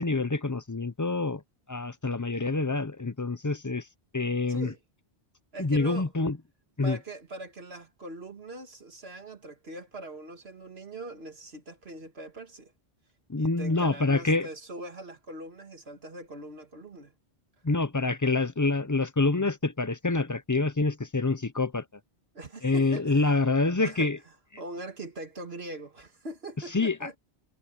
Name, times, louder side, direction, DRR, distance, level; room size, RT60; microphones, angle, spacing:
voice 1, 0.0-1.4 1.7-3.9 4.1-4.7 5.6-6.4 6.8-7.0 13.3-14.5 17.6-21.8 22.6-24.2 26.7-27.2, left 3 dB, 20° left, 0.5 m, -26 dB
voice 2, 5.5-6.1 6.8-12.7 13.4-17.1 22.3-24.1 24.6-27.2, right 2 dB, 65° right, 2.0 m, -42 dB
omnidirectional pair, 1.1 m